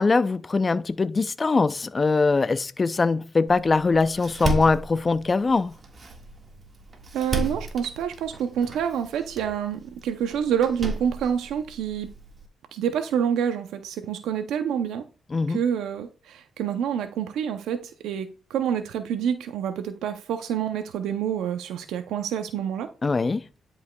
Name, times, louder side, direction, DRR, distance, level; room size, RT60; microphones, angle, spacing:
voice 1, 0.0-5.7 15.3-15.6 23.0-23.5, left 4 dB, 30° left, 0.4 m, -22 dB
Door, 3.5-12.5, right 2 dB, 35° right, 1.6 m, -35 dB
voice 2, 7.1-12.1 12.7-15.0 15.5-22.9, right 8 dB, 80° right, 0.5 m, -27 dB
10.5 x 5.3 x 2.2 m
cardioid pair, 90°, 0 cm